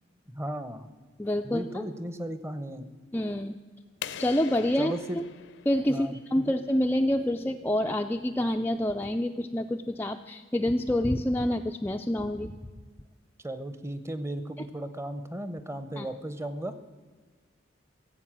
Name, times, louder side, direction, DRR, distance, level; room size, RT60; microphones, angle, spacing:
voice 1, 0.3-0.9 1.4-2.9 4.8-5.2 5.9-6.2 13.4-16.7, right 1 dB, 15° right, 11 dB, 0.7 m, -35 dB
voice 2, 1.2-1.8 3.1-3.6 4.2-5.0 5.7-12.5 16.0-16.1, left 1 dB, 10° left, 4 dB, 0.3 m, -27 dB
sound 1, 4.0-6.7, left 8 dB, 65° left, 0.6 m, -43 dB
16.0 x 7.9 x 7.5 m, 1.4 s
head